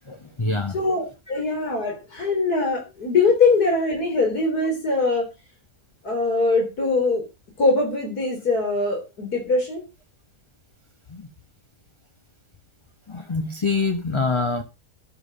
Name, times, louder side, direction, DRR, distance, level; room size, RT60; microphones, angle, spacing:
voice 1, 0.1-0.8 1.3-1.4 11.1-11.3 13.1-14.6, left 3 dB, 25° left, 0.9 m, -25 dB
voice 2, 0.7-5.3 6.0-7.2 7.6-9.8, left 3 dB, 85° left, 4.3 m, -22 dB
12.0 x 7.0 x 6.5 m
omnidirectional pair, 1.6 m